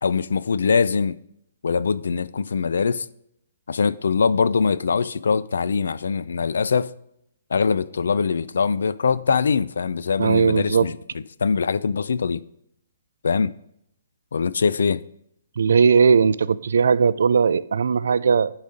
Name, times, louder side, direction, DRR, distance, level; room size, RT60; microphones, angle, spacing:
voice 1, 0.0-1.2 1.6-3.1 3.7-6.9 7.5-12.4 13.2-13.5 14.3-15.0, left 5 dB, 90° left, 0.4 m, -22 dB
voice 2, 10.2-10.9 15.6-18.5, right 6 dB, 75° right, 0.3 m, -18 dB
10.5 x 4.1 x 5.0 m
hypercardioid pair, 175°, 0 cm